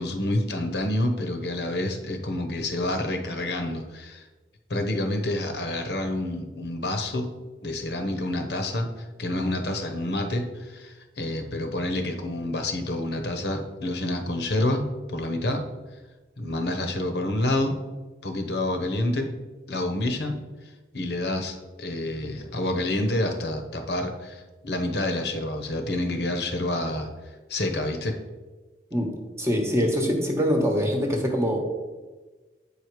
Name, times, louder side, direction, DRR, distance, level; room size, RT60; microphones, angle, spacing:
voice 1, 0.0-4.3 4.7-7.3 7.6-8.9 9.2-15.6 16.4-17.8 18.2-19.3 19.7-20.4 20.9-27.1 27.5-28.1, left 1 dB, 65° left, 6 dB, 1.0 m, -28 dB
voice 2, 28.9-31.6, equal, 15° right, 2 dB, 1.1 m, -24 dB
8.6 x 5.0 x 4.7 m, 1.3 s
head